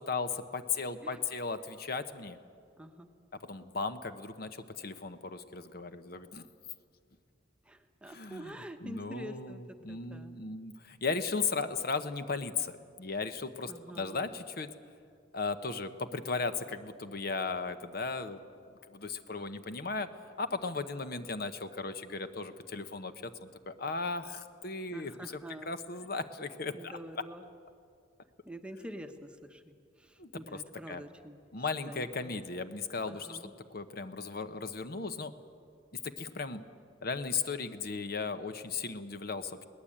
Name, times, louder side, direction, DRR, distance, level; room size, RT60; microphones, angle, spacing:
voice 1, 0.0-2.4 3.4-6.5 8.1-8.5 8.8-14.7 15.3-18.4 18.9-20.1 20.4-25.1 25.6-27.0 30.2-30.6 30.9-31.0 31.5-33.4 33.7-35.3 36.0-36.6 37.0-39.6, left 4 dB, 55° left, 10 dB, 1.0 m, -36 dB
voice 2, 2.8-3.1 7.6-10.3 13.7-14.3 24.9-25.7 26.7-27.5 28.4-31.4 31.8-32.3 33.1-33.5, equal, 5° right, 6 dB, 1.0 m, -46 dB
22.0 x 18.5 x 8.7 m, 2.3 s
head